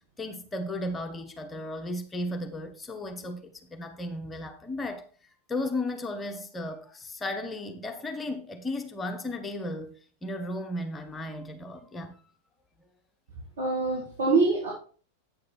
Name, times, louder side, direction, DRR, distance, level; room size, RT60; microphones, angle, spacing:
voice 1, 0.2-5.1 5.5-10.0 10.2-12.2, left 1 dB, 15° left, 1.0 m, -35 dB
voice 2, 13.6-14.7, right 3 dB, 65° right, 2.8 m, -24 dB
8.7 x 6.6 x 4.3 m
figure-of-eight pair, 90°, 0 cm